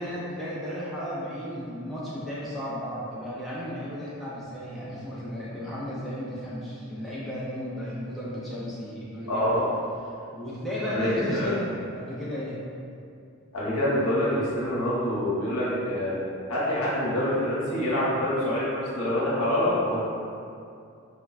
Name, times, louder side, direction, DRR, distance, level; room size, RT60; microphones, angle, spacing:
voice 1, 0.0-9.6 10.3-12.6, equal, ahead, -9 dB, 0.3 m, -34 dB
voice 2, 9.3-9.6 10.9-11.6 13.5-16.2 16.5-20.0, left 1 dB, 85° left, -8 dB, 0.9 m, -26 dB
3.3 x 2.1 x 2.4 m, 2.5 s
head